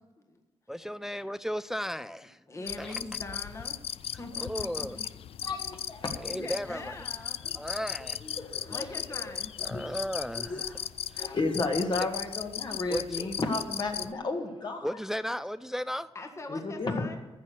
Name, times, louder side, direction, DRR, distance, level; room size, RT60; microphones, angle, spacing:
voice 1, 0.7-2.4 2.8-3.1 4.4-5.0 6.1-7.3 7.5-8.2 9.6-10.7 11.1-11.3 12.9-13.3 14.8-16.1, equal, 5° right, 0.3 m, -35 dB
voice 2, 2.5-3.8 4.2-4.9 6.2-7.4 8.7-9.5 16.1-17.2, left 2 dB, 30° left, 1.4 m, -42 dB
sound 1, 2.7-14.1, left 10 dB, 70° left, 0.3 m, -37 dB
voice 3, 5.4-6.1 7.4-7.5 8.2-9.3 9.6-9.9 10.4-10.9 11.1-14.9 16.5-17.1, left 3 dB, 45° left, 1.8 m, -33 dB
14.0 x 6.7 x 6.1 m
wide cardioid pair, 125°, 10 cm